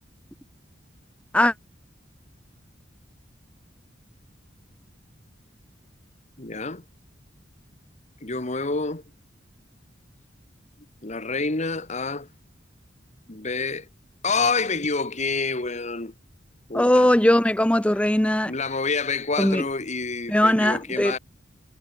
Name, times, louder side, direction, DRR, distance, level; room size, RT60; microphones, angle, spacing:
voice 1, 6.4-6.8 8.2-9.0 11.0-12.3 13.3-13.9 14.2-16.1 16.7-17.1 18.4-21.2, left 4 dB, 40° left, 1.7 m, -27 dB
voice 2, 16.7-18.5 19.4-19.6 20.3-21.2, left 1 dB, 5° left, 0.6 m, -19 dB
head